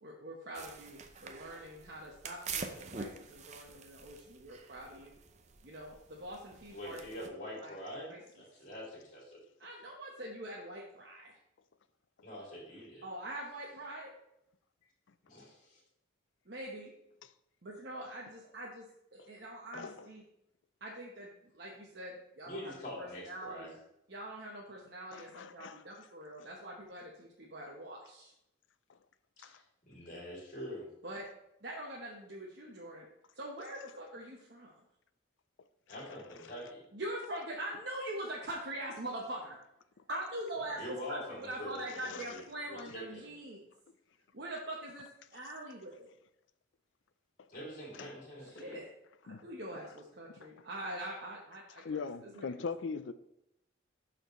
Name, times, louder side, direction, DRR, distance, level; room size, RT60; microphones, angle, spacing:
voice 1, 0.0-5.1 5.6-7.0 7.6-7.7 8.1-8.2 9.6-11.3 13.0-14.1 16.5-16.9 17.6-18.9 19.1-20.2 20.8-21.3 21.5-22.7 23.0-23.7 24.1-28.3 31.0-31.2 31.6-33.1 33.4-34.7 36.9-39.6 40.1-43.6 44.3-46.1 48.5-48.9 49.2-52.4, right 1 dB, 55° right, 1.0 m, -43 dB
sound 1, 0.5-7.3, right 5 dB, 35° right, 0.6 m, -46 dB
voice 2, 6.7-9.4 12.2-13.0 15.3-15.8 22.4-23.7 29.4-30.9 35.9-36.9 40.6-42.4 42.7-43.3 47.5-48.8, equal, 40° left, 2.5 m, -45 dB
voice 3, 19.7-20.1 25.1-25.8 29.4-29.5 36.4-36.5 42.0-42.3 42.9-43.0 48.0-48.1 48.6-48.7 49.3-49.4 50.4-50.5 51.8-53.1, left 5 dB, 75° left, 0.4 m, -41 dB
12.0 x 4.3 x 3.1 m
head